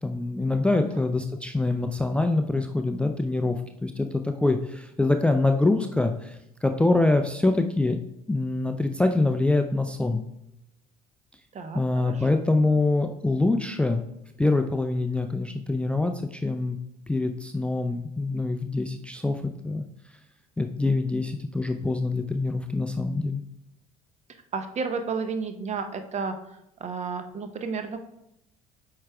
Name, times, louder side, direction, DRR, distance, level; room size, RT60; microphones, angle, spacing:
voice 1, 0.0-8.0 8.3-10.2 11.7-14.0 14.4-16.8 17.1-19.9 20.6-23.4, left 2 dB, 5° left, 6 dB, 0.4 m, -25 dB
voice 2, 11.5-12.3 12.7-12.8 24.5-28.0, right 5 dB, 35° right, 8 dB, 0.8 m, -32 dB
8.5 x 4.8 x 2.3 m, 0.83 s
hypercardioid pair, 60°, 19 cm